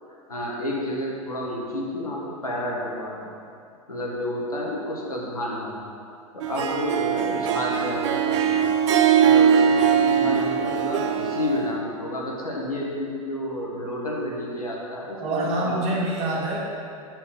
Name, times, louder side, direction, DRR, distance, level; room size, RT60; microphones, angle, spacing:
voice 1, 0.3-3.4 3.9-8.7 9.2-15.8, left 1 dB, 85° left, -3 dB, 1.1 m, -30 dB
Harp, 6.4-11.7, right 8 dB, 55° right, 0.4 m, -21 dB
voice 2, 15.2-16.7, right 1 dB, 35° right, -3 dB, 1.5 m, -26 dB
8.1 x 4.4 x 3.7 m, 2.4 s
figure-of-eight pair, 90°, 18 cm